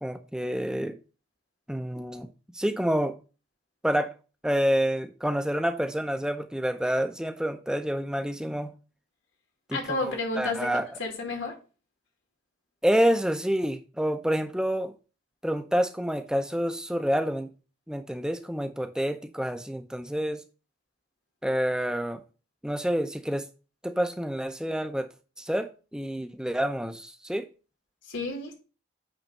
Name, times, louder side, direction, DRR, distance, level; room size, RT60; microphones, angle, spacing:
voice 1, 0.0-0.9 1.7-2.3 2.5-3.2 3.8-4.1 4.4-8.7 9.7-10.9 12.8-14.9 15.4-17.5 17.9-20.4 21.4-22.2 22.6-23.4 23.8-25.1 25.4-27.5, equal, 5° right, 0.6 m, -28 dB
voice 2, 9.7-10.7 11.0-11.5 28.1-28.5, left 2 dB, 80° left, 2.2 m, -31 dB
8.9 x 3.3 x 5.2 m
head